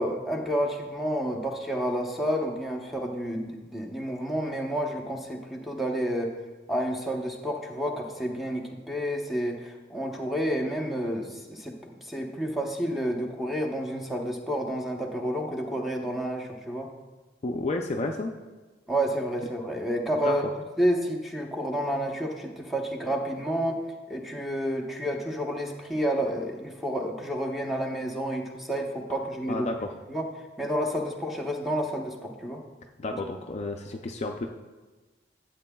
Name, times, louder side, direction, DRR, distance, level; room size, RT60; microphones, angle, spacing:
voice 1, 0.0-6.3 6.7-16.9 18.9-20.4 20.8-23.8 24.1-29.7 30.1-30.3 30.6-32.6, equal, ahead, 0 dB, 0.8 m, -30 dB
voice 2, 17.4-18.4 20.2-20.4 29.5-29.9 33.0-34.5, left 2 dB, 35° left, 3 dB, 0.4 m, -31 dB
12.5 x 8.0 x 2.3 m, 1.3 s
head